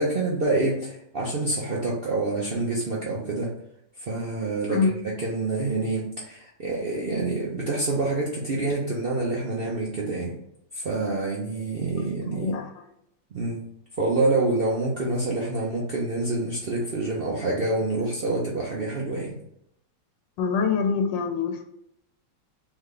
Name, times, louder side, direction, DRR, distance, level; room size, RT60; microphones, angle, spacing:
voice 1, 0.0-3.5 4.0-10.3 10.7-12.6 13.3-13.7 14.0-19.4, right 2 dB, 70° right, -4 dB, 0.5 m, -27 dB
voice 2, 12.4-12.7 20.4-21.6, left 5 dB, 90° left, 4 dB, 1.4 m, -24 dB
3.4 x 3.3 x 3.7 m, 0.76 s
omnidirectional pair, 2.0 m